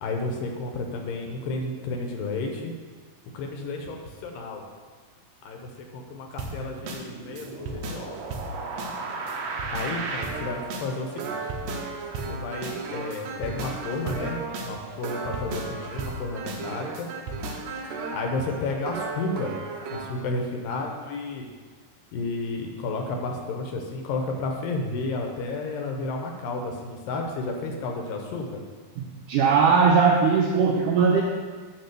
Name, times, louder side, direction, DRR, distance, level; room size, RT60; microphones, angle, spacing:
voice 1, 0.0-2.7 3.3-4.6 5.4-8.2 9.7-11.4 12.3-17.1 18.1-19.5 19.9-21.5 22.1-28.6, left 3 dB, 75° left, 2 dB, 2.4 m, -32 dB
sound 1, 6.4-20.2, right 3 dB, 75° right, 2.2 m, -34 dB
voice 2, 29.3-31.2, right 5 dB, 90° right, 0 dB, 1.8 m, -19 dB
10.0 x 3.7 x 6.7 m, 1.5 s
omnidirectional pair, 4.4 m